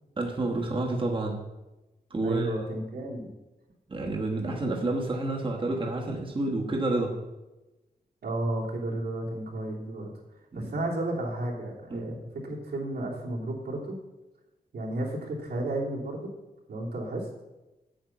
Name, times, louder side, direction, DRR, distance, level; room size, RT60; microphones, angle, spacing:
voice 1, 0.2-1.4 2.1-2.6 3.9-7.1 10.5-10.7 11.9-12.1, right 2 dB, 30° right, 0 dB, 1.2 m, -29 dB
voice 2, 2.2-3.3 4.7-4.8 8.2-10.1 10.5-14.0 14.7-16.3 16.7-17.3, right 1 dB, 85° right, -3 dB, 3.0 m, -32 dB
8.8 x 8.6 x 5.9 m, 1.0 s
wide cardioid pair, 155°, 16 cm